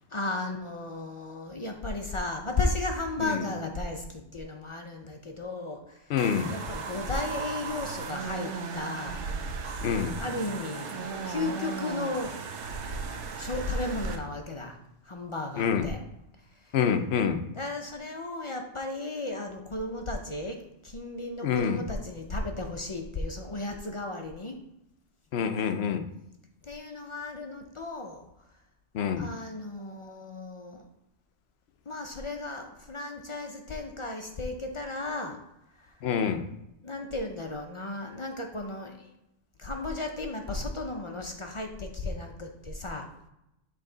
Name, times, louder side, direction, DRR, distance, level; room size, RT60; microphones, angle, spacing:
voice 1, 0.1-6.2 6.5-9.3 10.2-12.4 13.4-16.0 16.4-16.8 17.5-24.6 26.6-28.6 29.2-30.9 31.9-35.4 35.7-36.1 36.8-39.1 39.6-43.1, left 2 dB, 40° left, 3 dB, 0.4 m, -35 dB
voice 2, 6.1-6.5 9.8-10.1 15.6-15.9 16.7-17.4 21.4-21.8 25.3-26.1 28.9-29.3 36.0-36.4, left 7 dB, 65° left, 8 dB, 0.8 m, -26 dB
sound 1, 6.2-14.2, right 4 dB, 90° right, 1.1 m, -36 dB
8.3 x 3.3 x 3.8 m, 0.86 s
omnidirectional pair, 1.2 m